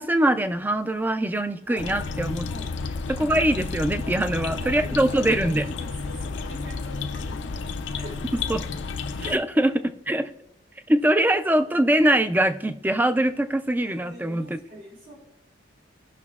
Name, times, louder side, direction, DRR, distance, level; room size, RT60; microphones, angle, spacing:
voice 1, 0.0-2.5 3.1-5.6 8.5-8.6 9.3-9.7 10.1-10.3 10.9-14.6, right 1 dB, 10° right, 9 dB, 0.3 m, -22 dB
voice 2, 1.7-2.8 4.0-5.2 5.5-8.5 9.1-9.8 13.8-15.1, equal, 85° right, -3 dB, 3.1 m, -43 dB
sound 1, 1.8-9.4, left 4 dB, 75° left, 0.5 m, -31 dB
17.0 x 6.1 x 2.4 m, 0.81 s
head